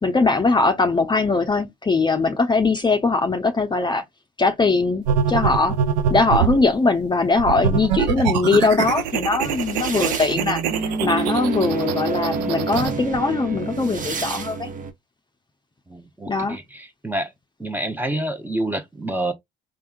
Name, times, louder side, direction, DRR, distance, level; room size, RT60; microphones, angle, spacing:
voice 1, 0.0-4.0 4.4-5.8 6.1-10.6 11.0-14.7 16.3-16.6, left 3 dB, 20° left, 0.7 m, -21 dB
sound 1, 5.1-6.7 7.4-12.9, right 8 dB, 85° right, 0.5 m, -24 dB
sound 2, 8.5-14.9, right 4 dB, 40° right, 0.9 m, -28 dB
voice 2, 15.9-17.3 17.6-19.3, right 1 dB, 10° right, 0.9 m, -28 dB
3.5 x 3.5 x 2.4 m
hypercardioid pair, 55°, 21 cm